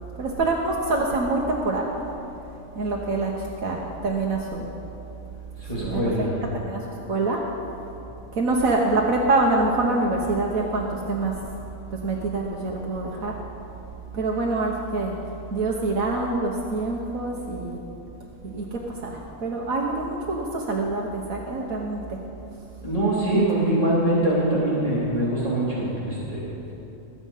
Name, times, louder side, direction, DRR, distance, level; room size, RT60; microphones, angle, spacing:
voice 1, 0.2-1.9 2.7-3.3 3.6-4.7 5.8-6.8 7.1-7.5 8.3-11.4 12.0-13.3 14.1-15.2 15.5-17.8 18.4-22.2 23.3-23.4, right 2 dB, 85° right, -1 dB, 1.5 m, -25 dB
voice 2, 5.6-6.3 22.8-26.4, right 1 dB, 25° left, -9 dB, 3.0 m, -23 dB
21.0 x 8.0 x 5.6 m, 3.0 s
omnidirectional pair, 1.4 m